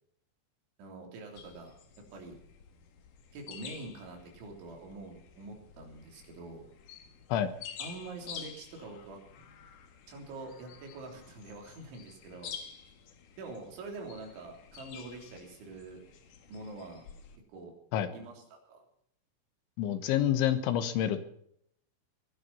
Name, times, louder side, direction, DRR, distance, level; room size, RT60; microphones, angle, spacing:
voice 1, 0.8-1.7 2.0-2.4 3.3-6.7 7.8-9.2 10.1-12.5 13.4-16.0 16.5-17.0 17.5-17.7 18.1-18.8, right 3 dB, 70° right, 2 dB, 5.7 m, -45 dB
sound 1, 1.3-17.4, left 7 dB, 60° left, 2.3 m, -50 dB
voice 2, 19.8-21.2, left 10 dB, 80° left, 10 dB, 3.5 m, -28 dB
20.0 x 11.0 x 5.7 m, 0.70 s
omnidirectional pair, 5.6 m